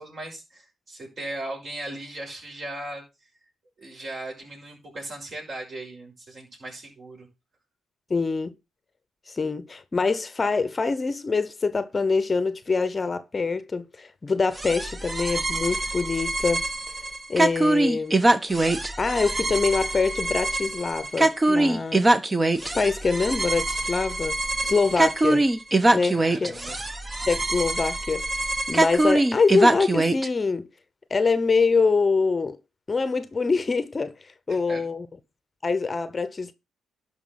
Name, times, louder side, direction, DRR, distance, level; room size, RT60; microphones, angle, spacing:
voice 1, 0.0-3.0 3.8-7.3 24.6-24.7 26.0-26.8 34.5-34.8, right 1 dB, 45° right, 5.9 m, -38 dB
voice 2, 8.1-8.5 9.3-16.6 17.3-18.2 19.0-22.1 22.7-24.4 24.6-25.5 25.9-26.6 27.3-30.7 31.1-32.6 32.9-34.1 34.5-35.1 35.6-36.5, left 4 dB, 30° left, 0.9 m, -24 dB
sound 1, 14.6-30.3, right 2 dB, 20° right, 0.9 m, -24 dB
11.5 x 5.0 x 5.8 m
cardioid pair, 90°, 0 cm